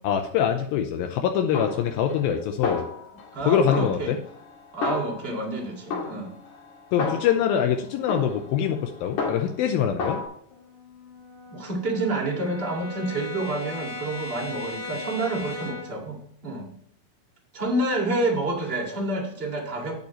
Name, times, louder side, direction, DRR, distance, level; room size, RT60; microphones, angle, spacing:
voice 1, 0.0-2.8 3.5-4.2 6.9-10.2, left 8 dB, 80° left, 5 dB, 2.4 m, -24 dB
Snare drum, 1.5-2.4 2.6-3.4 3.7-5.5 5.9-7.6 8.1-9.7 10.0-10.3, left 4 dB, 50° left, 2.9 m, -32 dB
voice 2, 3.3-4.2 4.7-6.3 11.5-16.7 17.5-19.9, right 2 dB, 25° right, 0 dB, 1.2 m, -28 dB
Brass instrument, 10.5-16.0, left 4 dB, 65° left, 1.1 m, -38 dB
9.2 x 8.5 x 3.0 m, 0.68 s
omnidirectional pair, 4.4 m